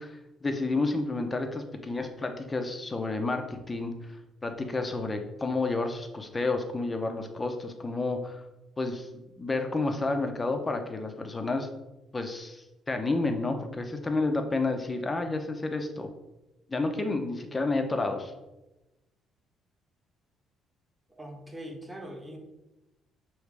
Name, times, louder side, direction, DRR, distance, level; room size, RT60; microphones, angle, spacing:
voice 1, 0.0-3.9 4.4-8.4 8.8-9.1 9.4-11.7 12.1-16.1 16.7-18.3, left 3 dB, 20° left, 5 dB, 0.7 m, -30 dB
voice 2, 21.1-22.4, right 1 dB, 10° right, 1 dB, 1.1 m, -42 dB
6.6 x 3.1 x 4.7 m, 1.0 s
cardioid pair, 135°, 0 cm